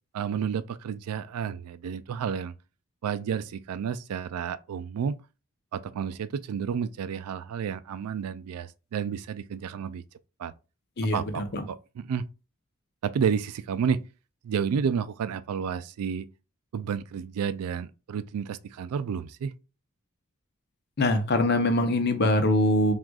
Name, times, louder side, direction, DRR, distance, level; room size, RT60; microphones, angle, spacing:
voice 1, 0.1-2.5 3.0-5.2 5.7-10.0 10.4-10.5 11.1-12.3 13.0-14.0 14.4-16.3 16.7-19.5, right 7 dB, 85° right, 0.3 m, -31 dB
voice 2, 11.0-11.6 21.0-22.9, left 1 dB, 45° left, 0.7 m, -23 dB
6.0 x 2.4 x 2.3 m
head